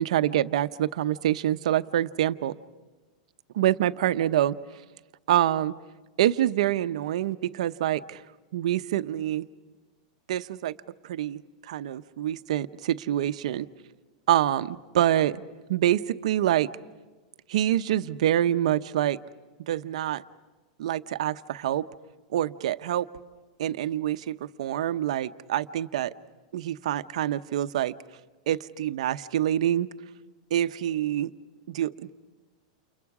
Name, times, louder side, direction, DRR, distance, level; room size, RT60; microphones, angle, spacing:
voice 1, 0.0-2.5 3.5-4.6 5.3-5.7 6.2-8.2 8.5-9.5 10.3-10.7 11.0-13.7 14.3-15.4 15.7-16.7 17.5-19.2 19.7-20.2 20.8-21.9 22.3-23.1 23.6-26.1 26.5-27.9 28.5-29.9 30.5-31.3 31.7-32.1, right 12 dB, 65° right, 12 dB, 0.7 m, -26 dB
29.5 x 29.5 x 4.9 m, 1.3 s
supercardioid pair, 180°, 4 cm